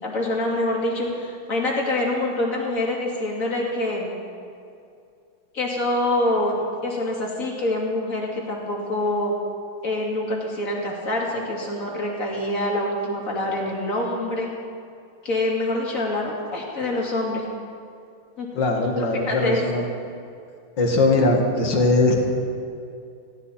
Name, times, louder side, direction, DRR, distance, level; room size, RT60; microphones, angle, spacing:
voice 1, 0.0-4.2 5.5-6.5 6.8-9.3 9.8-14.5 15.2-17.4 18.4-18.5 18.8-19.6, left 1 dB, 40° left, -2 dB, 2.9 m, -25 dB
voice 2, 18.5-19.8 20.8-22.2, left 2 dB, 60° left, 1 dB, 2.5 m, -20 dB
19.0 x 16.5 x 4.3 m, 2.4 s
omnidirectional pair, 2.3 m